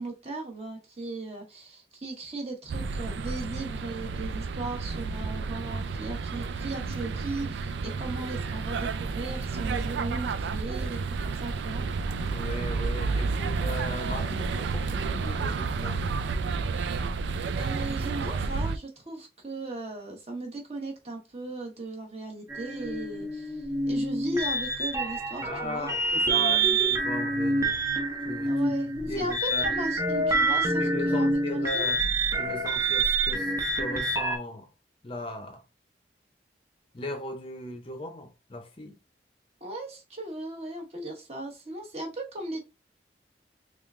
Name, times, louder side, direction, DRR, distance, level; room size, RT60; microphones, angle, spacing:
voice 1, 0.0-11.8 17.6-26.8 28.5-31.3 31.7-31.9 39.6-42.6, right 2 dB, 35° right, 1.1 m, -37 dB
sound 1, 2.7-18.8, right 4 dB, 80° right, 0.4 m, -31 dB
voice 2, 12.2-16.2 25.4-27.8 28.3-28.5 28.8-29.7 30.8-32.1 32.3-34.7 35.0-35.6 36.9-39.0, left 1 dB, 30° left, 0.6 m, -37 dB
sound 2, 22.5-34.4, right 2 dB, 15° right, 0.5 m, -27 dB
3.6 x 3.3 x 2.4 m
head